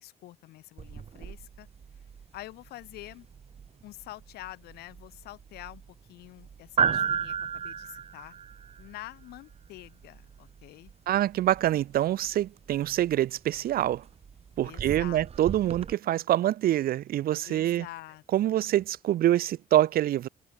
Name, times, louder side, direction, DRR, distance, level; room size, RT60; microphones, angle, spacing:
voice 1, 0.0-1.7 2.3-3.3 3.8-5.8 6.1-8.3 8.8-10.9 14.6-15.6 17.4-18.7, left 17 dB, 90° left, 1.9 m, -46 dB
sound 1, 0.8-15.9, right 7 dB, 40° right, 1.4 m, -36 dB
voice 2, 11.1-14.0 14.6-17.9 18.3-20.3, right 13 dB, 70° right, 1.0 m, -25 dB
cardioid pair, 105°, 16 cm